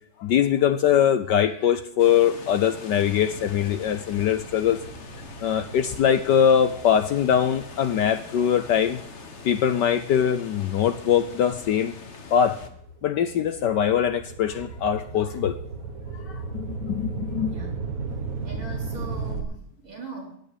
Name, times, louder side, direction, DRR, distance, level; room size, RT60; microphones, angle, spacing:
voice 1, 0.2-4.8 5.4-9.0 9.4-11.9 12.3-12.6 13.0-15.5 16.3-17.6, left 9 dB, 65° left, 11 dB, 1.2 m, -22 dB
sound 1, 2.0-12.7, left 5 dB, 40° left, 1.4 m, -42 dB
sound 2, 4.1-10.8 11.4-19.4, right 4 dB, 45° right, 1.9 m, -37 dB
voice 2, 18.4-20.4, right 3 dB, 70° right, -2 dB, 5.2 m, -40 dB
16.5 x 9.6 x 5.0 m, 0.69 s
omnidirectional pair, 2.3 m